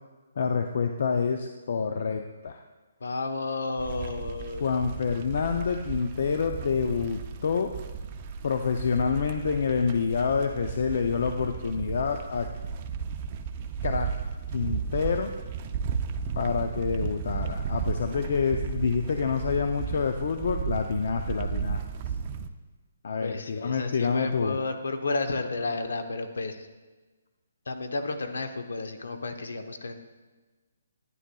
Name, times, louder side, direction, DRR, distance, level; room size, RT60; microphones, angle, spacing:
voice 1, 0.4-2.6 4.6-7.7 8.4-12.5 13.8-14.2 14.5-15.3 16.4-21.8 23.0-24.6, left 5 dB, 60° left, 5 dB, 0.4 m, -27 dB
voice 2, 3.0-4.7 23.2-26.7 27.7-29.9, left 3 dB, 75° left, 6 dB, 0.8 m, -32 dB
sound 1, 3.8-22.5, right 6 dB, 35° right, 0.5 m, -34 dB
10.0 x 9.6 x 2.3 m, 1.3 s
hypercardioid pair, 150°, 0 cm